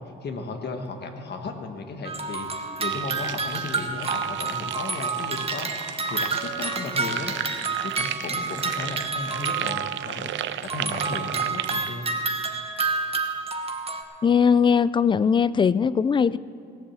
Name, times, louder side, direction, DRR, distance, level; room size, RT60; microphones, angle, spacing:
voice 1, 0.0-7.4 7.8-12.1, left 3 dB, 55° left, 5 dB, 1.5 m, -35 dB
sound 1, 2.0-10.2 10.6-14.0, right 4 dB, 30° right, 1.1 m, -29 dB
sound 2, 2.8-11.9, right 12 dB, 70° right, 0.5 m, -34 dB
voice 2, 14.2-16.4, left 6 dB, 25° left, 18 dB, 0.3 m, -20 dB
17.5 x 7.2 x 7.2 m, 2.5 s
cardioid pair, 90°, 20 cm